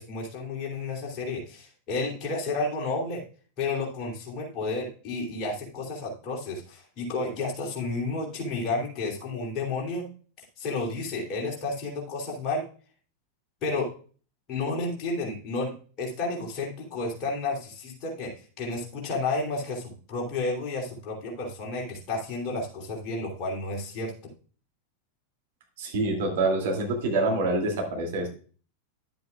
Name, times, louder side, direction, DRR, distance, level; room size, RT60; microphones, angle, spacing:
voice 1, 0.0-3.2 3.6-10.1 10.6-12.6 13.6-13.9 14.5-18.3 18.6-24.1, left 3 dB, 35° left, -2 dB, 3.1 m, -31 dB
voice 2, 25.8-28.3, right 2 dB, 55° right, 0 dB, 2.6 m, -26 dB
11.0 x 7.8 x 2.4 m, 0.40 s
figure-of-eight pair, 90°, 0 cm